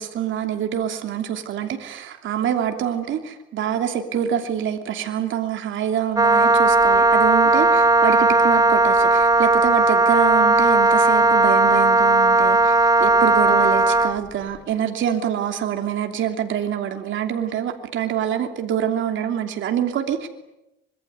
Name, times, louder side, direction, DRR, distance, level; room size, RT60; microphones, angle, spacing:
voice 1, 0.0-20.3, right 9 dB, 75° right, 5 dB, 3.1 m, -26 dB
Wind instrument woodwind instrument, 6.2-14.2, right 2 dB, 15° right, 1.8 m, -16 dB
25.5 x 22.5 x 9.6 m, 0.88 s
cardioid pair, 90°, 20 cm